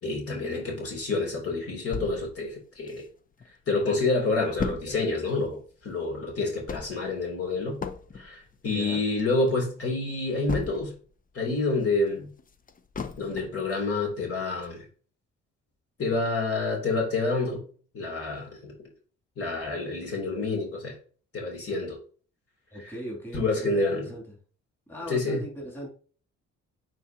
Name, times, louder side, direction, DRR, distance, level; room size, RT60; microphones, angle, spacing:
voice 1, 0.0-3.0 3.7-7.8 8.1-10.9 11.3-12.3 13.2-14.8 16.0-17.7 17.9-18.7 19.4-20.9 21.3-22.0 22.8-22.9 23.3-24.1 25.1-25.4, left 3 dB, 50° left, 3.1 m, -28 dB
sound 1, 1.9-3.5 3.9-4.0 4.1-11.1 11.5-13.7 14.1-14.2 14.6-14.7, left 5 dB, 30° left, 0.7 m, -37 dB
voice 2, 8.7-9.0 22.7-24.4 24.9-25.9, equal, 5° left, 2.8 m, -39 dB
9.1 x 4.1 x 2.9 m
cardioid pair, 90°, 30 cm